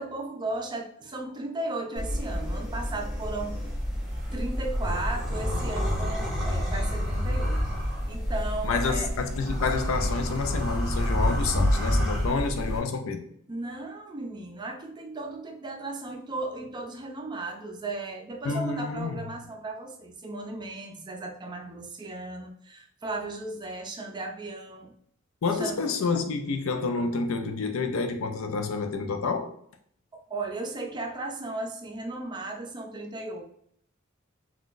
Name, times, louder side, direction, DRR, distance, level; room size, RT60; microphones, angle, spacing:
voice 1, 0.0-3.6 4.3-9.1 13.5-24.9 25.5-25.8 30.1-33.4, right 2 dB, 20° right, 0.4 m, -36 dB
sound 1, 2.0-12.8, equal, ahead, 1.0 m, -28 dB
voice 2, 8.6-13.3 18.4-19.2 25.4-29.5, left 4 dB, 80° left, 0.5 m, -29 dB
3.7 x 2.3 x 2.5 m
head